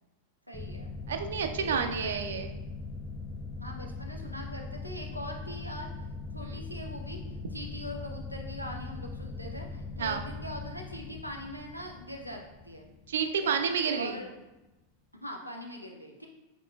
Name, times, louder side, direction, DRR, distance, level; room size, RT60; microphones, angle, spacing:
voice 1, 0.5-0.9 1.5-2.1 3.6-5.9 6.3-7.2 7.5-12.9 13.2-13.6 13.9-14.3 15.2-16.3, equal, 90° left, 1 dB, 0.6 m, -42 dB
sound 1, 0.5-13.8, left 3 dB, 15° left, 0.3 m, -40 dB
voice 2, 1.1-2.5 6.4-6.6 10.0-10.2 13.1-14.2, right 6 dB, 65° right, 7 dB, 0.4 m, -30 dB
5.0 x 3.6 x 2.3 m, 1.0 s
figure-of-eight pair, 90°, 0 cm